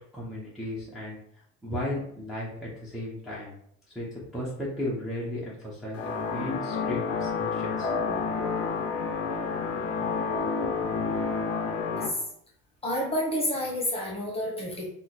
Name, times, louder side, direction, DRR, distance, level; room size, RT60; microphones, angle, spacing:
voice 1, 0.1-1.2 1.6-3.5 3.9-8.1, left 1 dB, ahead, -8 dB, 0.9 m, -35 dB
sound 1, 5.9-12.1, left 5 dB, 50° left, 0.7 m, -29 dB
voice 2, 12.8-14.9, left 1 dB, 20° left, -2 dB, 1.2 m, -29 dB
2.9 x 2.3 x 4.1 m, 0.69 s
cardioid pair, 110°, 31 cm